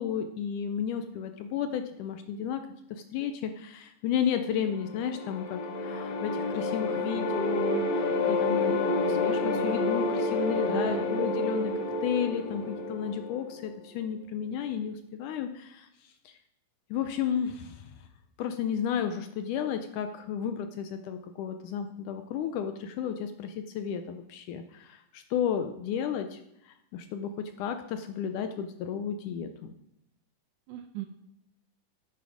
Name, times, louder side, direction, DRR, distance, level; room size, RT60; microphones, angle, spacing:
voice 1, 0.0-2.6 2.9-11.7 12.0-15.9 16.3-16.4 16.9-17.9 18.4-26.4 26.7-29.7, left 8 dB, 75° left, 7 dB, 1.9 m, -33 dB
sound 1, 4.7-13.8, left 2 dB, 60° left, 1.8 m, -29 dB
voice 2, 10.6-11.1 30.7-31.1, right 13 dB, 80° right, 7 dB, 1.8 m, -38 dB
10.0 x 9.3 x 5.0 m, 0.82 s
omnidirectional pair, 4.1 m